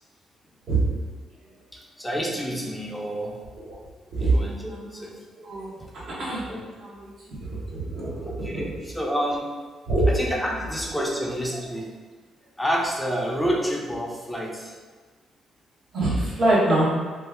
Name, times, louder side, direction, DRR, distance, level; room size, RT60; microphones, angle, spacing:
voice 1, 1.7-3.4 4.2-5.2 6.5-6.6 8.2-9.5 10.1-11.9 12.6-14.7, equal, 5° left, -2 dB, 0.5 m, -29 dB
voice 2, 4.7-5.0 5.4-5.7 6.1-6.5 6.8-7.1 7.5-8.6 9.9-10.0 11.6-11.7 13.4-13.5 15.9-16.9, right 2 dB, 65° right, -7 dB, 1.2 m, -25 dB
3.0 x 2.4 x 3.5 m, 1.4 s
cardioid pair, 90°, 0 cm